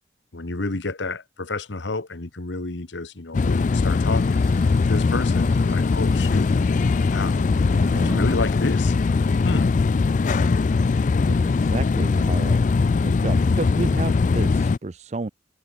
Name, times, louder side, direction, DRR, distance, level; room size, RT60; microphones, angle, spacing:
voice 1, 0.3-6.5 7.1-7.5 7.9-9.0 9.4-9.8 10.3-10.6, left 3 dB, 85° left, 1.3 m, -30 dB
sound 1, 3.3-14.8, left 4 dB, 45° left, 0.3 m, -20 dB
Water / Sink (filling or washing), 3.9-9.6, right 1 dB, 20° right, 2.7 m, -46 dB
voice 2, 7.6-8.3 11.3-12.6 13.0-15.3, right 3 dB, 35° right, 0.5 m, -32 dB
head